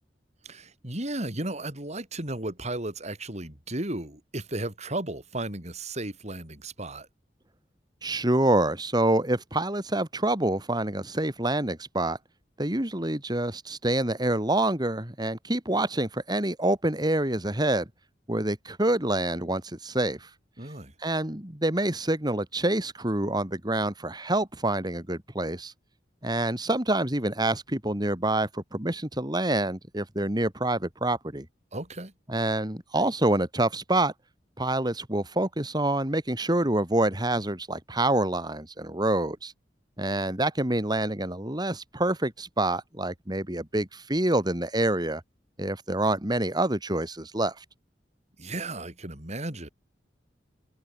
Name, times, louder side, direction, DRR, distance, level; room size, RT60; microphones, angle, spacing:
voice 1, 0.4-7.1 20.6-20.9 31.7-32.1 48.4-49.7, right 2 dB, 40° right, 5.1 m, -34 dB
voice 2, 8.0-12.2 12.6-17.9 18.3-20.3 21.0-25.7 26.2-31.5 32.3-34.1 34.6-39.5 40.0-45.2 45.6-47.5, right 1 dB, 25° right, 3.5 m, -27 dB
head